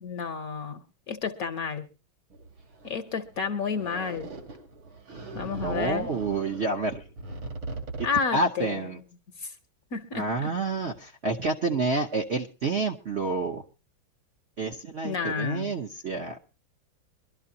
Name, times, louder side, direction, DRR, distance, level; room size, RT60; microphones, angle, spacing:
voice 1, 0.0-0.8 1.1-1.9 2.8-4.3 5.3-6.1 8.0-8.8 9.4-9.5 9.9-10.5 15.0-15.7, left 5 dB, 55° left, 9 dB, 1.2 m, -30 dB
sound 1, 2.3-8.1, right 2 dB, 85° right, 3.4 m, -40 dB
voice 2, 5.6-7.1 8.3-9.0 10.1-13.6 14.6-16.4, right 3 dB, 50° right, -1 dB, 0.9 m, -29 dB
23.0 x 12.5 x 2.7 m, 0.29 s
omnidirectional pair, 2.1 m